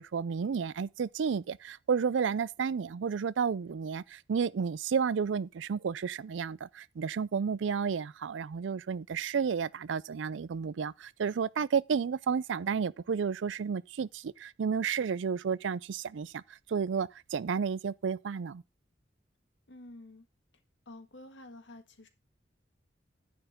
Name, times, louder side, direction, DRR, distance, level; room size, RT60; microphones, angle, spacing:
voice 1, 0.0-16.4 16.7-18.6, right 6 dB, 80° right, 0.4 m, -32 dB
voice 2, 19.7-20.3 20.8-22.1, left 1 dB, 75° left, 1.6 m, -49 dB
10.5 x 7.9 x 3.6 m
head